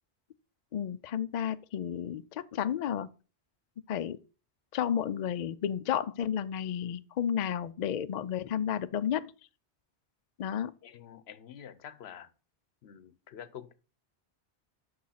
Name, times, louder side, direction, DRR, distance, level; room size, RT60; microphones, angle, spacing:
voice 1, 0.7-3.1 3.9-4.2 4.7-9.3 10.4-10.7, left 9 dB, 55° left, 0.5 m, -32 dB
voice 2, 10.8-12.3 12.8-13.7, left 9 dB, 75° left, 0.9 m, -47 dB
6.4 x 6.3 x 5.7 m
omnidirectional pair, 1.1 m